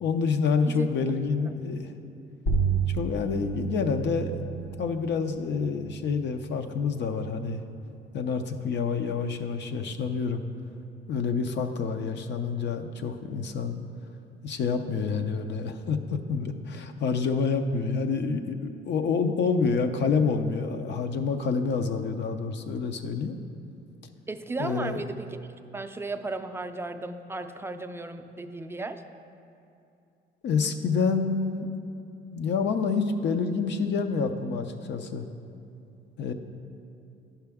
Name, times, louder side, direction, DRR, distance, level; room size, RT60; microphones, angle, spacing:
voice 1, 0.0-1.9 2.9-7.6 8.1-10.4 11.1-13.8 14.4-23.4 24.6-25.0 30.4-31.7 32.3-35.3 36.2-36.3, left 5 dB, 65° left, 7 dB, 0.5 m, -28 dB
sound 1, 2.5-7.5, right 5 dB, 85° left, 1.0 m, -32 dB
voice 2, 24.3-25.4 25.7-29.0, right 2 dB, 10° right, 7 dB, 0.4 m, -35 dB
10.5 x 5.7 x 3.5 m, 2.6 s
cardioid pair, 90°, 20 cm